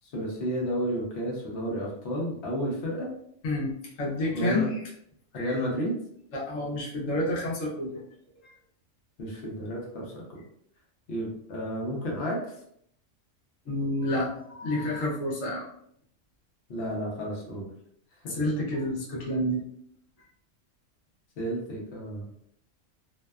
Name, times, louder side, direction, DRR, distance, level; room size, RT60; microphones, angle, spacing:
voice 1, 0.0-3.1 4.3-4.7 5.3-5.9 9.2-10.4 11.1-12.6 16.7-17.7 21.4-22.3, equal, 60° left, -2 dB, 0.9 m, -31 dB
voice 2, 3.4-4.8 5.3-5.5 6.3-8.0 8.4-8.5 13.7-15.7 18.3-19.6, left 1 dB, 80° left, -4 dB, 1.1 m, -29 dB
2.7 x 2.1 x 2.2 m, 0.69 s
omnidirectional pair, 1.3 m